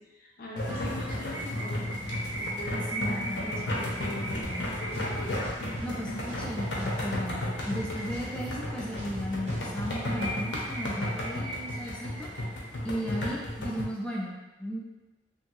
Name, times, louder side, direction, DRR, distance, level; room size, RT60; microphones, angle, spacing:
voice 1, 0.0-1.8 2.4-4.6, left 1 dB, 55° left, -2 dB, 0.6 m, -41 dB
sound 1, 0.6-13.8, left 1 dB, 90° left, 0.7 m, -34 dB
sound 2, 0.9-8.8 9.2-9.3 9.5-9.6 9.9-13.0, right 1 dB, 85° right, 0.6 m, -39 dB
voice 2, 2.9-3.8 5.8-7.4 7.7-12.3 12.8-14.3 14.6-14.8, equal, 5° left, -4 dB, 0.5 m, -35 dB
sound 3, 4.4-4.5 4.9-5.9 6.3-7.3 7.6-9.9, right 1 dB, 40° right, 0.8 m, -40 dB
2.9 x 2.6 x 2.6 m, 1.1 s
head